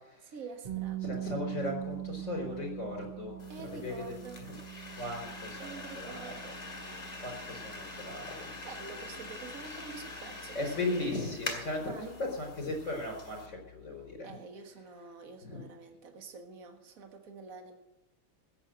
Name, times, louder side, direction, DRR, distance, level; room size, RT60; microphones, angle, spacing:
voice 1, 0.2-1.3 3.5-4.5 5.6-6.6 8.6-11.1 11.8-12.2 14.2-17.8, right 4 dB, 45° right, 5 dB, 1.9 m, -47 dB
sound 1, 0.6-12.5, right 11 dB, 85° right, 4.5 m, -43 dB
voice 2, 1.0-4.2 5.0-6.3 7.1-8.5 10.5-14.4 15.4-15.6, left 2 dB, 40° left, 2 dB, 4.7 m, -37 dB
sound 2, 3.4-13.5, left 2 dB, 20° left, 2.4 m, -44 dB
15.5 x 7.3 x 8.9 m, 0.92 s
omnidirectional pair, 2.3 m